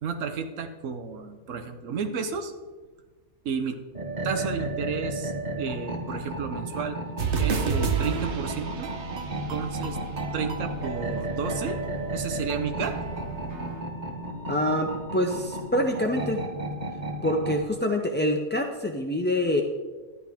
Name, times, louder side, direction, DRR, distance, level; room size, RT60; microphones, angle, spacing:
voice 1, 0.0-2.5 3.4-3.8 4.2-5.3 5.6-7.0 7.4-8.9 9.5-10.0 10.3-11.8 12.1-12.9, right 5 dB, 85° right, 7 dB, 1.2 m, -31 dB
sound 1, 3.9-17.7, right 1 dB, 35° right, 1.5 m, -34 dB
sound 2, 7.2-13.8, right 5 dB, 65° right, 1.2 m, -32 dB
voice 2, 14.5-16.4 17.2-19.6, left 1 dB, 15° left, 2 dB, 0.4 m, -26 dB
12.5 x 11.0 x 3.5 m, 1.3 s
omnidirectional pair, 1.3 m